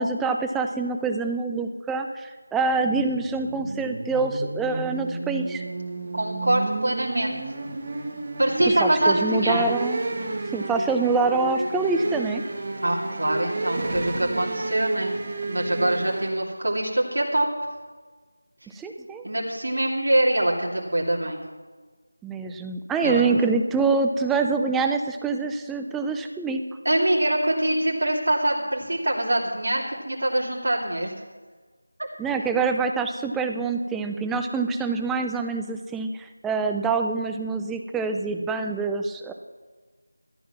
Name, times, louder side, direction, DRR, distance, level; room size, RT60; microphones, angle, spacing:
voice 1, 0.0-5.6 8.8-10.0 10.5-12.4 18.7-19.3 22.2-26.6 32.2-39.3, right 4 dB, 5° right, 5 dB, 0.3 m, -25 dB
sound 1, 2.6-16.3, right 2 dB, 25° right, 1.4 m, -31 dB
voice 2, 6.1-7.4 8.4-9.6 12.8-15.2 15.5-17.5 19.2-21.4 23.0-23.2 26.8-31.1, right 1 dB, 65° right, -3 dB, 2.8 m, -24 dB
14.0 x 9.3 x 5.9 m, 1.4 s
figure-of-eight pair, 175°, 0 cm